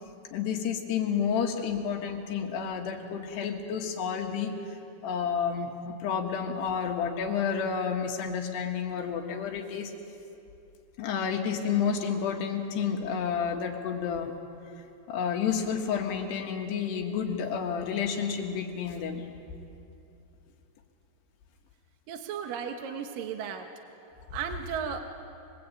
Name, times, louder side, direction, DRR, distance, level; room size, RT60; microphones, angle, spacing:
voice 1, 0.3-4.5 5.0-9.9 11.0-14.3 15.1-19.2, left 7 dB, 80° left, 3 dB, 3.9 m, -30 dB
voice 2, 22.1-23.7 24.3-25.0, right 7 dB, 65° right, 5 dB, 2.5 m, -35 dB
24.0 x 22.5 x 8.7 m, 2.8 s
omnidirectional pair, 4.8 m